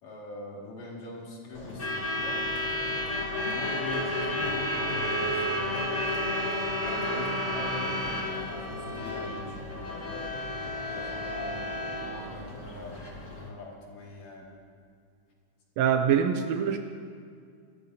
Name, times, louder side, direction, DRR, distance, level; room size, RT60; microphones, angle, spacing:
voice 1, 0.0-2.5 3.3-6.0 6.8-10.3 10.8-11.6 12.0-13.0 13.3-14.6, left 2 dB, 70° left, -3 dB, 3.4 m, -42 dB
Truck / Alarm, 1.5-13.5, left 1 dB, 40° left, 1.0 m, -31 dB
voice 2, 15.8-16.8, right 8 dB, 75° right, 6 dB, 1.7 m, -24 dB
24.5 x 14.0 x 2.7 m, 2.2 s
omnidirectional pair, 3.4 m